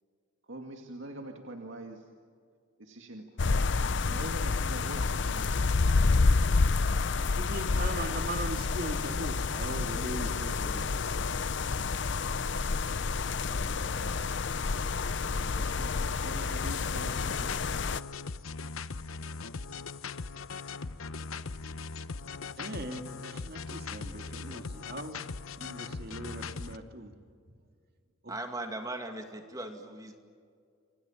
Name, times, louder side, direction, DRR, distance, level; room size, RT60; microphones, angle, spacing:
voice 1, 0.5-2.0 2.8-5.9 15.6-17.5, right 1 dB, 65° right, 3 dB, 2.1 m, -44 dB
sound 1, 3.4-18.0, left 4 dB, 55° left, 0.6 m, -29 dB
voice 2, 7.3-10.9 22.6-25.3 25.6-27.1 28.2-28.3, right 1 dB, 45° right, 5 dB, 2.6 m, -40 dB
sound 2, 17.1-26.8, left 4 dB, 80° left, 0.9 m, -40 dB
voice 3, 28.3-30.2, right 2 dB, 15° right, 5 dB, 2.2 m, -38 dB
28.5 x 26.0 x 7.3 m, 2.2 s
head